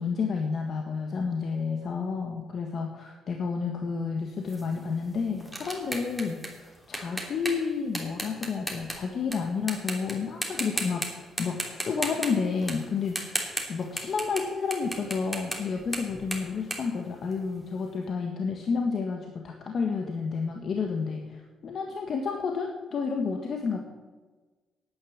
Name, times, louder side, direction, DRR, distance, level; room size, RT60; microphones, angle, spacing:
voice 1, 0.0-23.9, left 5 dB, 55° left, 2 dB, 1.6 m, -30 dB
sound 1, 4.5-9.4 9.7-10.1 10.4-11.1 11.4-14.4 14.7-17.7, equal, 5° left, 3.2 m, -35 dB
11.0 x 9.7 x 8.7 m, 1.3 s
cardioid pair, 90°, 0 cm